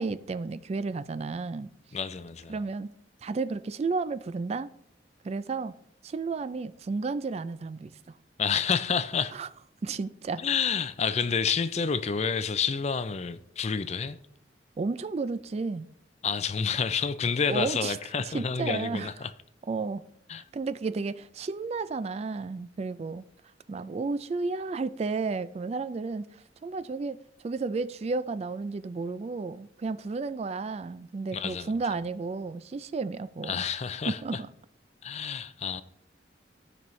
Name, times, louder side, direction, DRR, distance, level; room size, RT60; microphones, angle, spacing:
voice 1, 0.0-1.7 2.5-2.9 3.2-4.7 5.2-5.7 6.0-8.2 9.3-9.5 9.8-10.4 14.8-15.9 17.5-18.0 18.3-19.1 19.7-20.0 20.3-23.2 23.7-33.6 34.1-34.5, right 4 dB, 35° right, 0.3 m, -32 dB
voice 2, 1.9-2.6 8.4-9.4 10.4-14.2 16.2-19.3 20.3-20.4 31.3-31.7 33.4-34.4 35.0-35.8, left 6 dB, 35° left, 0.4 m, -29 dB
15.0 x 5.3 x 3.2 m
head